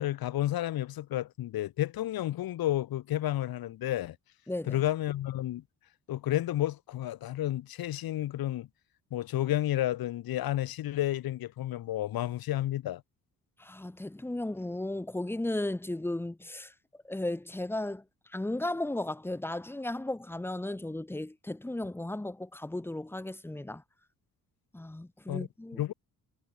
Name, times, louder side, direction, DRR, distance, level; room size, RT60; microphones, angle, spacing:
voice 1, 0.0-4.1 4.7-5.6 6.1-8.7 9.1-13.0 25.3-25.5 25.8-25.9, left 13 dB, 75° left, 6.6 m, -31 dB
voice 2, 4.5-4.8 13.6-16.7 17.0-18.0 18.3-23.8 24.7-25.9, left 1 dB, 5° left, 3.3 m, -35 dB
cardioid pair, 175°, 36 cm